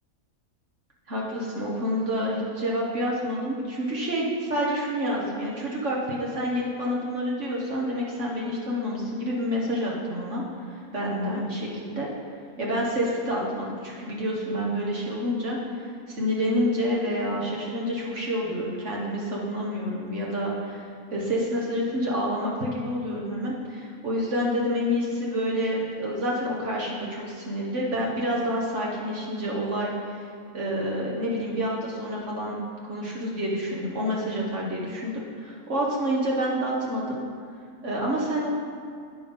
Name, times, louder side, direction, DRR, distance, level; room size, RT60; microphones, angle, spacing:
voice 1, 1.1-10.4 10.7-12.1 12.6-15.6 16.1-29.9 30.5-32.6 32.9-37.2 37.8-38.5, equal, 55° right, -3 dB, 1.5 m, -28 dB
9.1 x 5.1 x 5.3 m, 2.2 s
omnidirectional pair, 1.5 m